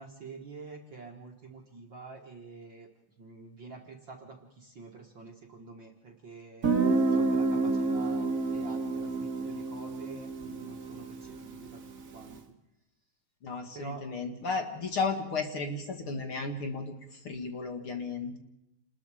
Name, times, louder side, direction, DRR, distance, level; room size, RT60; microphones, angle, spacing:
voice 1, 0.0-2.9 3.2-11.8 12.1-12.4 13.7-14.0, right 4 dB, 45° right, 2 dB, 1.7 m, -47 dB
Guitar, 6.6-12.2, right 3 dB, 75° right, 0.7 m, -29 dB
voice 2, 13.4-16.9 17.2-18.4, left 4 dB, 45° left, 5 dB, 2.1 m, -34 dB
28.5 x 20.5 x 4.9 m, 0.90 s
omnidirectional pair, 4.0 m